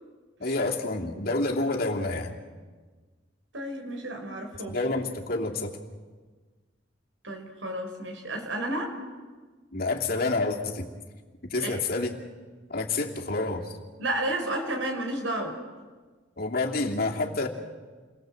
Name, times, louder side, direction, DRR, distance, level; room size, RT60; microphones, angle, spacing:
voice 1, 0.4-2.3 4.7-5.7 9.7-10.9 11.5-12.2 12.7-13.7 16.4-17.5, left 2 dB, 50° left, 1 dB, 2.8 m, -28 dB
voice 2, 3.5-4.8 7.2-8.9 11.6-11.8 14.0-15.6, right 1 dB, 80° right, 4 dB, 5.4 m, -32 dB
29.5 x 21.5 x 7.8 m, 1.4 s
head